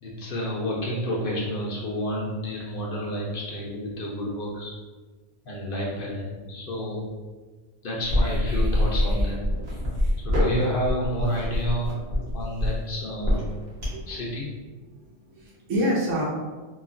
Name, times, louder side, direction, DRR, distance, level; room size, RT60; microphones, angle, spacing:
voice 1, 0.0-4.7 5.4-7.0 7.8-9.4 10.2-12.0 12.3-13.4 14.1-14.5, equal, 55° left, -4 dB, 0.7 m, -30 dB
sound 1, 8.1-14.1, left 1 dB, 60° right, 1.2 m, -24 dB
voice 2, 13.7-14.1 15.0-16.2, equal, 85° right, -4 dB, 1.1 m, -27 dB
3.0 x 2.3 x 2.5 m, 1.3 s
omnidirectional pair, 1.2 m